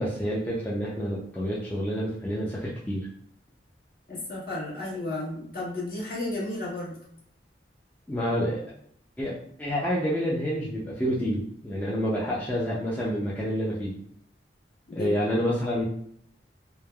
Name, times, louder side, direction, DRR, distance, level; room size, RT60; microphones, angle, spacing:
voice 1, 0.0-3.1 8.1-8.6 9.2-13.9 14.9-15.8, equal, 10° left, -7 dB, 0.4 m, -28 dB
voice 2, 4.1-7.0 14.9-15.4, left 2 dB, 55° left, -7 dB, 1.2 m, -33 dB
3.1 x 2.1 x 2.2 m, 0.68 s
head